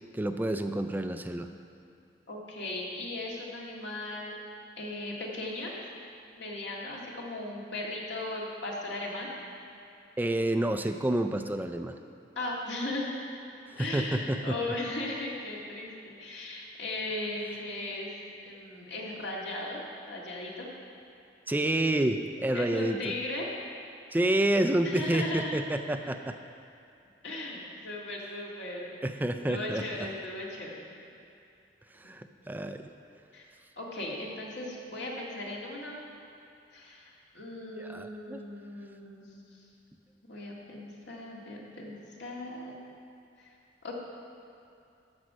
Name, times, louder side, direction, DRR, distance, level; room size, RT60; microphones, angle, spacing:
voice 1, 0.1-1.5 10.2-11.9 13.7-14.5 21.5-23.1 24.1-26.4 29.0-30.1 32.0-32.8 37.8-38.4, right 1 dB, 10° right, 7 dB, 0.4 m, -29 dB
voice 2, 2.3-4.4 4.8-5.7 6.4-9.3 12.4-13.1 13.8-18.1 18.4-19.8 20.1-20.7 22.5-23.5 24.8-25.6 27.2-29.0 29.5-30.8 32.0-32.1 33.3-33.5 33.8-36.0 36.7-39.4 40.2-42.8 43.4-43.5 43.8-43.9, left 2 dB, 90° left, -3 dB, 2.1 m, -37 dB
12.5 x 5.3 x 7.4 m, 2.6 s
head